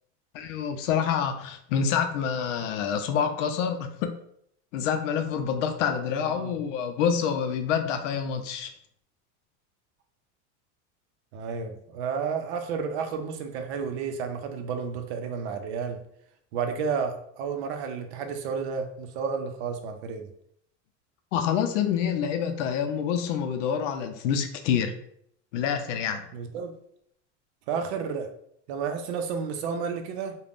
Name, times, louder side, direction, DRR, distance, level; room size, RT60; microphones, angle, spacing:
voice 1, 0.3-4.1 4.7-8.7 21.3-24.9 25.5-26.3, left 7 dB, 90° left, 6 dB, 0.5 m, -27 dB
voice 2, 6.3-6.6 11.3-16.0 16.5-20.3 26.3-26.7 27.7-28.3 28.7-30.3, right 6 dB, 65° right, 6 dB, 0.5 m, -31 dB
2.4 x 2.2 x 3.4 m, 0.69 s
supercardioid pair, 180°, 36 cm